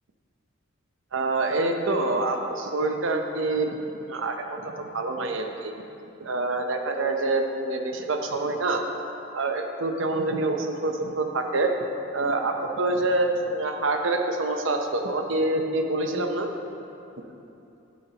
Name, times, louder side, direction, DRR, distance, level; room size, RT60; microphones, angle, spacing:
voice 1, 1.1-5.7 6.2-8.8 9.3-11.7 12.1-16.5, right 2 dB, 65° right, 4 dB, 0.8 m, -26 dB
11.5 x 8.8 x 2.9 m, 2.8 s
head